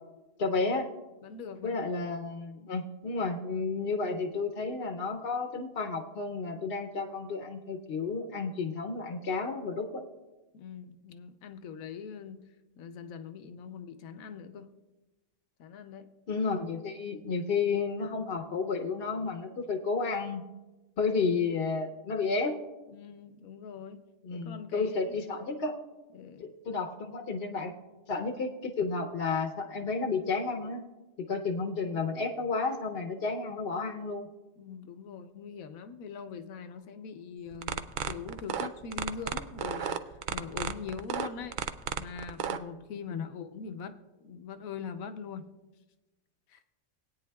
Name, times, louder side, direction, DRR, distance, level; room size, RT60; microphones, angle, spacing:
voice 1, 0.4-0.9 1.6-10.0 16.3-20.4 21.0-22.6 24.2-25.7 26.4-27.7 28.1-30.8 31.2-34.3 43.1-43.2, left 4 dB, 55° left, 4 dB, 0.8 m, -32 dB
voice 2, 1.2-2.0 10.5-12.5 12.8-14.7 15.6-16.1 22.9-24.0 24.3-25.2 26.1-26.5 34.6-41.6 42.0-45.5 46.5-46.7, left 6 dB, 85° left, 9 dB, 1.1 m, -42 dB
sound 1, 37.5-42.6, right 8 dB, 85° right, 0.4 m, -33 dB
19.5 x 9.1 x 2.3 m, 1.1 s
omnidirectional pair, 1.4 m